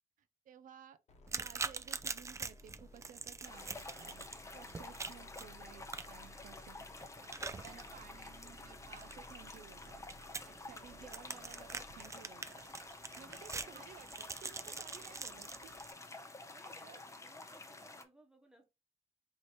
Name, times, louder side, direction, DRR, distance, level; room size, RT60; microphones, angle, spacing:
voice 1, 0.5-1.0 1.3-4.3 4.5-6.9 7.1-12.7 13.2-15.9 16.6-17.0, right 9 dB, 85° right, 0.4 m, -56 dB
sound 1, 1.1-12.2, left 2 dB, 55° left, 0.9 m, -59 dB
sound 2, 1.3-15.9, right 4 dB, 20° right, 0.3 m, -45 dB
sound 3, 3.4-18.0, left 2 dB, 20° left, 0.6 m, -51 dB
voice 2, 7.6-8.3 16.5-18.6, right 1 dB, 5° right, 1.1 m, -63 dB
3.2 x 2.8 x 4.2 m
wide cardioid pair, 115°, 13 cm